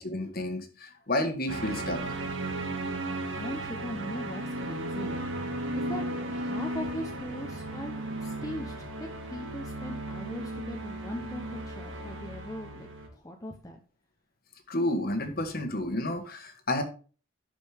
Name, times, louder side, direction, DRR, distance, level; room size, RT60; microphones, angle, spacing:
voice 1, 0.0-2.0 14.7-16.8, left 1 dB, 45° left, 6 dB, 1.5 m, -30 dB
sound 1, 1.5-13.1, right 1 dB, 65° right, 1.8 m, -35 dB
voice 2, 3.4-5.5 5.7-13.8, left 1 dB, 15° left, 2 dB, 0.8 m, -40 dB
11.5 x 5.1 x 3.5 m, 0.37 s
head